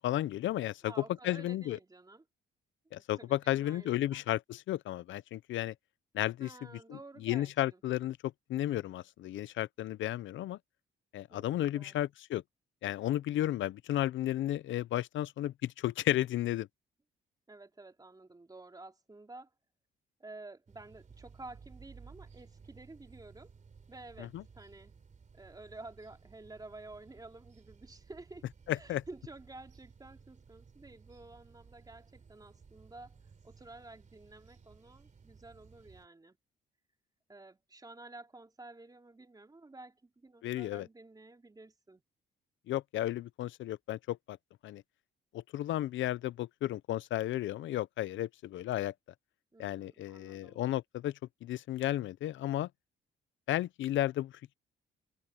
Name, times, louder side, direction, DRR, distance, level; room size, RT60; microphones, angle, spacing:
voice 1, 0.0-1.8 2.9-5.7 6.1-6.5 6.9-8.2 8.5-10.6 11.1-12.4 12.8-16.7 24.2-24.4 28.7-29.0 40.4-40.9 42.7-44.4 44.6-44.8 45.3-48.9 49.6-51.1 51.4-52.7 53.5-54.5, left 13 dB, 75° left, 0.7 m, -33 dB
voice 2, 0.8-2.2 3.2-4.2 6.4-7.8 11.3-12.1 17.5-19.5 20.2-23.5 23.9-24.9 25.3-28.5 28.7-33.2 33.4-36.4 37.3-42.0 49.5-50.6, right 2 dB, 20° right, 3.8 m, -51 dB
sound 1, 20.7-36.1, right 5 dB, 40° right, 3.4 m, -57 dB
open air
cardioid pair, 90°, 20 cm